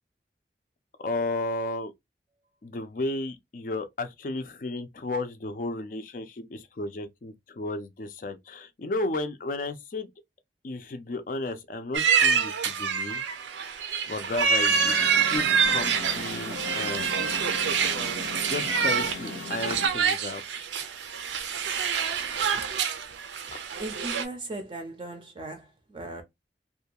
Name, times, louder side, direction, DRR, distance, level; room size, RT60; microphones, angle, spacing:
voice 1, 1.0-1.9 2.6-10.1 10.6-13.2 14.1-17.4 18.5-20.6 23.5-23.6, left 2 dB, 45° left, 0.4 m, -33 dB
sound 1, 11.9-24.2, right 6 dB, 85° right, 0.5 m, -26 dB
sound 2, 14.7-19.9, left 4 dB, 80° left, 0.7 m, -39 dB
voice 2, 19.7-20.0 22.5-22.7 23.8-26.2, right 2 dB, 25° right, 0.4 m, -38 dB
2.6 x 2.3 x 2.8 m
head